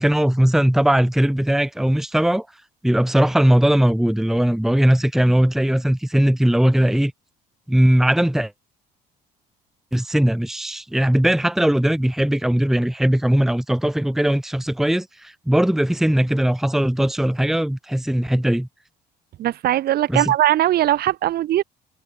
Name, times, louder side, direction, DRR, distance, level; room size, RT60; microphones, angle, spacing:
voice 1, 0.0-2.5 2.8-7.1 7.7-8.5 9.9-18.7 20.1-20.2, right 1 dB, ahead, 1.0 m, -19 dB
voice 2, 19.4-21.6, right 13 dB, 65° right, 2.8 m, -19 dB
cardioid pair, 110°, 17 cm